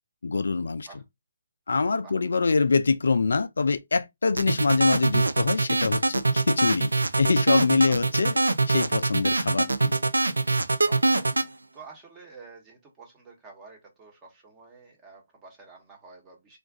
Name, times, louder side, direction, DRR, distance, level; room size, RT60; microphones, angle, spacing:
voice 1, 0.2-0.9 1.7-6.9 7.2-8.4 8.7-9.9, left 4 dB, 75° left, 0.3 m, -24 dB
sound 1, 4.4-11.5, right 2 dB, 90° right, 0.4 m, -23 dB
voice 2, 10.8-16.6, right 4 dB, 15° right, 1.0 m, -49 dB
2.5 x 2.4 x 3.5 m
figure-of-eight pair, 150°, 0 cm